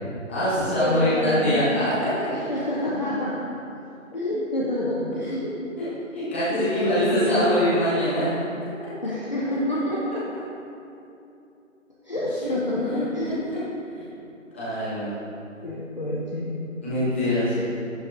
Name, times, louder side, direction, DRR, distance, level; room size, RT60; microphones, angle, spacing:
voice 1, 0.3-2.3 5.8-5.9 6.1-8.3 12.4-12.5 12.9-13.0 13.5-13.6 14.6-15.1 16.8-17.6, equal, 10° left, -13 dB, 1.2 m, -24 dB
voice 2, 0.8-1.8 2.3-3.3 4.1-5.5 6.5-7.6 9.0-10.3 12.0-13.4 15.6-16.6 17.6-17.7, left 1 dB, 35° left, -6 dB, 0.7 m, -27 dB
11.0 x 8.3 x 2.5 m, 2.8 s
figure-of-eight pair, 165°, 40 cm